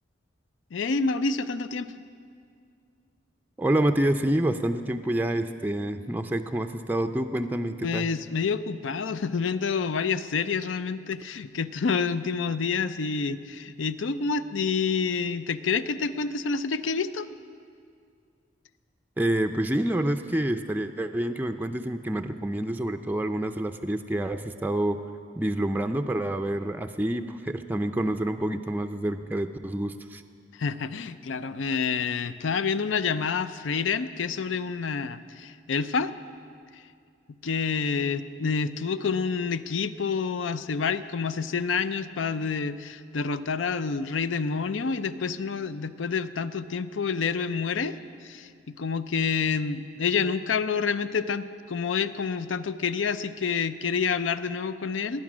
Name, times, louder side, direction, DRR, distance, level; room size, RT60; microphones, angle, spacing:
voice 1, 0.7-1.9 7.8-17.3 30.6-36.1 37.4-48.0 48.2-55.2, left 5 dB, 85° left, 14 dB, 0.5 m, -28 dB
voice 2, 3.6-8.1 19.2-25.0 25.4-30.2, right 1 dB, 10° right, 6 dB, 0.4 m, -27 dB
20.0 x 9.5 x 6.1 m, 2.3 s
head